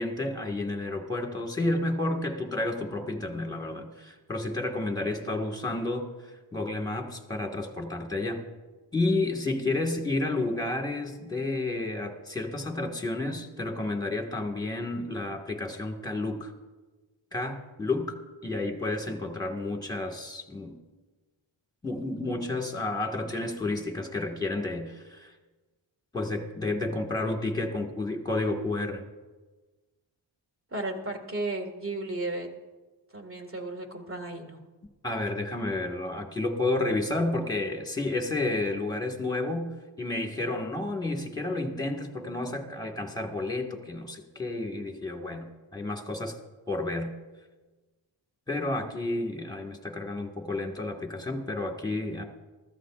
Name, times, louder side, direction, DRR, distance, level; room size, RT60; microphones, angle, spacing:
voice 1, 0.0-6.1 6.5-8.5 8.9-16.5 17.3-20.7 21.8-25.3 26.1-29.0 35.0-46.4 46.7-47.1 48.5-52.2, left 2 dB, 10° left, 2 dB, 1.7 m, -31 dB
voice 2, 30.7-32.5 33.1-34.6, right 2 dB, 25° right, 3 dB, 2.0 m, -34 dB
24.0 x 14.0 x 2.5 m, 1.3 s
wide cardioid pair, 130°, 46 cm